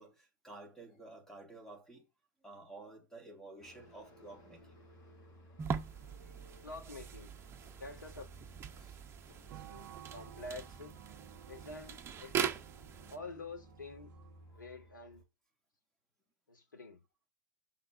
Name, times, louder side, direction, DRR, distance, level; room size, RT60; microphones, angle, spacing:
voice 1, 0.0-2.1 2.4-4.7 8.8-9.0, right 2 dB, 5° left, 3.5 m, -52 dB
sound 1, 3.6-15.2, equal, 35° left, 5.1 m, -59 dB
sound 2, 5.6-13.2, right 7 dB, 25° right, 1.4 m, -41 dB
voice 2, 6.6-7.4 7.8-8.3 9.3-11.0 11.5-12.5 13.1-14.1 14.5-15.2 16.5-17.0, left 3 dB, 80° left, 3.0 m, -48 dB
sound 3, 9.5-14.6, right 12 dB, 50° right, 0.9 m, -55 dB
6.6 x 5.7 x 7.1 m
figure-of-eight pair, 95°, 10 cm